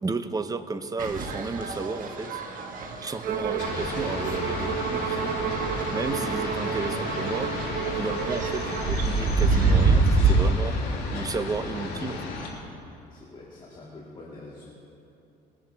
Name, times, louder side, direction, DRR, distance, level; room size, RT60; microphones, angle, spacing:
voice 1, 0.0-2.4 3.0-5.4 5.9-10.8 11.1-12.2, right 3 dB, 20° right, 10 dB, 0.7 m, -33 dB
sound 1, 1.0-10.5, right 3 dB, 50° right, 1.6 m, -27 dB
Bowed string instrument, 3.2-9.0, right 8 dB, 70° right, 1.2 m, -31 dB
sound 2, 3.6-12.5, left 3 dB, 70° left, 3.3 m, -33 dB
voice 2, 13.1-14.7, left 3 dB, 30° left, -5 dB, 2.2 m, -45 dB
21.5 x 11.0 x 3.4 m, 2.7 s
cardioid pair, 110°, 17 cm